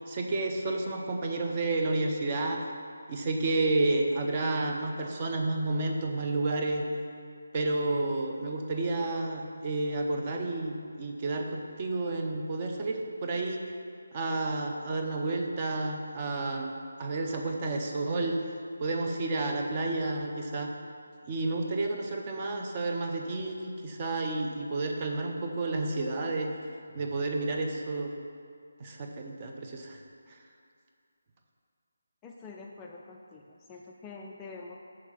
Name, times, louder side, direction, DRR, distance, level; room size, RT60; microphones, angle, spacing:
voice 1, 0.1-2.6 3.1-6.8 7.5-13.6 14.1-16.7 17.0-18.4 18.8-20.7 21.3-26.5 26.9-28.1 28.8-30.0, right 2 dB, 30° right, 2 dB, 0.6 m, -30 dB
voice 2, 32.2-34.8, left 4 dB, 15° left, -1 dB, 0.3 m, -46 dB
6.3 x 3.6 x 6.1 m, 2.3 s
figure-of-eight pair, 165°, 0 cm